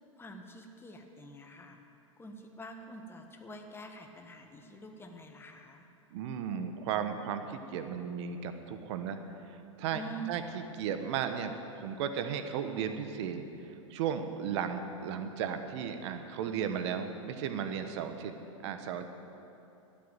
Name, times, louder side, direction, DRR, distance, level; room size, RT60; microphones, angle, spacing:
voice 1, 0.2-1.8 2.2-5.8 9.9-10.4, right 2 dB, 15° left, 4 dB, 1.6 m, -46 dB
voice 2, 6.1-10.0 10.3-18.3 18.6-19.1, right 7 dB, 60° right, 8 dB, 1.3 m, -35 dB
13.0 x 9.2 x 9.2 m, 2.9 s
hypercardioid pair, 100°, 17 cm